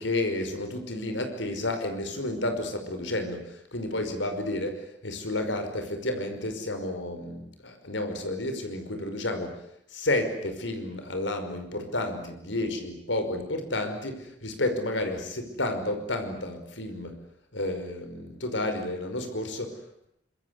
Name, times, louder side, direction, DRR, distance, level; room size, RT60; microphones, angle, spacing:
voice 1, 0.0-9.6 9.9-17.2 17.5-20.1, left 1 dB, 75° left, 7 dB, 5.4 m, -31 dB
26.0 x 23.0 x 9.7 m, 0.74 s
head